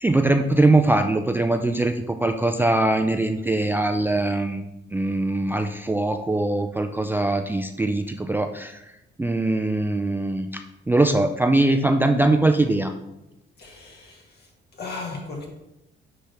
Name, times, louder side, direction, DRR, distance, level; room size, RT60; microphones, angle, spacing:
voice 1, 0.0-1.9 2.2-4.6 4.9-8.7 9.2-10.5 10.9-12.9, right 2 dB, 10° right, 6 dB, 0.3 m, -21 dB
voice 2, 13.6-14.2 14.8-15.5, left 3 dB, 55° left, -1 dB, 2.1 m, -35 dB
9.8 x 3.3 x 3.4 m, 0.91 s
cardioid pair, 90°, 20 cm